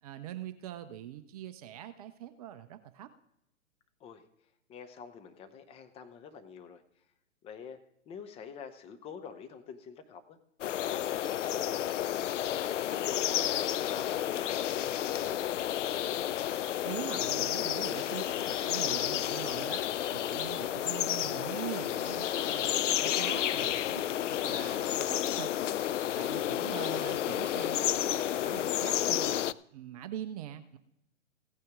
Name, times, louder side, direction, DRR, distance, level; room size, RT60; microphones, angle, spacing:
voice 1, 0.0-3.1 16.8-19.8 20.1-25.5 26.2-30.8, right 11 dB, 30° right, 10 dB, 0.6 m, -43 dB
voice 2, 4.7-6.8 7.4-7.8 8.1-10.4 10.8-12.0 12.8-15.4, left 6 dB, 15° left, 9 dB, 0.8 m, -47 dB
sound 1, 10.6-29.5, left 11 dB, 70° left, 0.5 m, -31 dB
16.0 x 9.3 x 3.6 m, 0.80 s
figure-of-eight pair, 125°, 39 cm